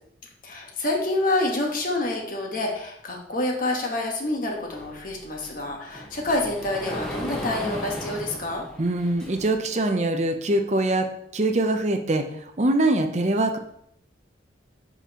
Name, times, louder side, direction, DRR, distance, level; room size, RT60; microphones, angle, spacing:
voice 1, 0.4-8.6, left 2 dB, 45° left, 0 dB, 1.3 m, -27 dB
Sliding door, 4.7-9.7, equal, 5° left, 1.0 m, -36 dB
voice 2, 8.8-11.1 11.3-13.6, right 2 dB, 35° right, 5 dB, 0.6 m, -23 dB
7.4 x 5.2 x 3.0 m, 0.72 s
head